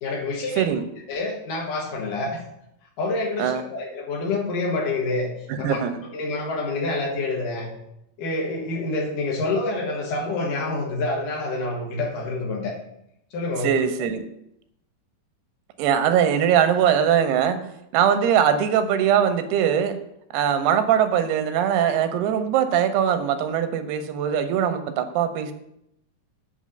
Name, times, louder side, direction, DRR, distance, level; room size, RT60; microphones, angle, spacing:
voice 1, 0.0-0.7 1.1-2.4 3.0-5.3 5.6-5.8 6.1-7.7 8.2-12.7 13.3-14.1, left 2 dB, 60° left, -2 dB, 2.9 m, -27 dB
voice 2, 5.5-6.0 13.6-14.3 15.8-17.6 17.9-20.0 20.3-25.5, right 9 dB, 85° right, 8 dB, 2.7 m, -21 dB
8.4 x 3.5 x 6.4 m, 0.79 s
omnidirectional pair, 4.5 m